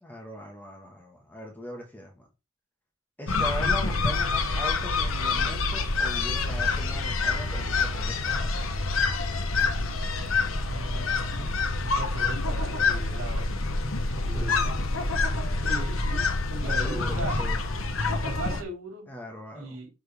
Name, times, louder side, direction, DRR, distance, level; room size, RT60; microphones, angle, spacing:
voice 1, 0.0-2.2 3.2-8.7 14.3-14.7 16.6-17.6 19.1-19.8, equal, 10° left, 1.6 m, -40 dB
sound 1, 3.3-18.6, left 3 dB, 90° left, 1.0 m, -27 dB
voice 2, 10.7-13.5 14.2-14.7 15.6-17.3 18.2-19.1 19.5-19.9, right 2 dB, 85° right, 4.2 m, -38 dB
6.2 x 4.8 x 3.5 m
head